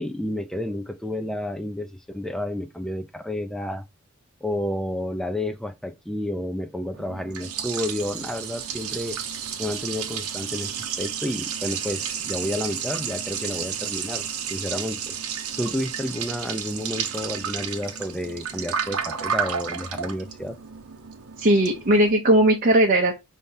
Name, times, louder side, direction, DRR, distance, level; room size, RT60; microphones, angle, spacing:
voice 1, 0.0-3.8 4.4-9.2 9.6-15.2 15.6-20.6, left 1 dB, ahead, 0.4 m, -30 dB
Liquid, 6.9-22.1, right 7 dB, 75° right, 0.8 m, -32 dB
voice 2, 21.4-23.1, right 1 dB, 40° right, 0.7 m, -18 dB
5.4 x 2.8 x 3.3 m
head